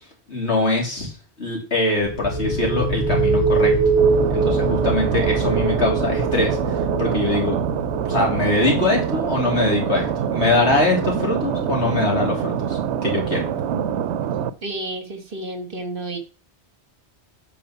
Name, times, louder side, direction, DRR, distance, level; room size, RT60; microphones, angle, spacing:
voice 1, 0.3-1.1 1.4-3.7 4.3-7.6 8.1-13.4, left 2 dB, 75° left, 0 dB, 3.2 m, -22 dB
sound 1, 2.0-13.5, right 4 dB, 20° left, 2.5 m, -24 dB
sound 2, 4.0-14.5, right 9 dB, 80° right, 0.9 m, -25 dB
voice 2, 14.6-16.2, right 2 dB, 55° right, 7 dB, 1.6 m, -31 dB
9.1 x 4.8 x 5.7 m, 0.37 s
omnidirectional pair, 1.1 m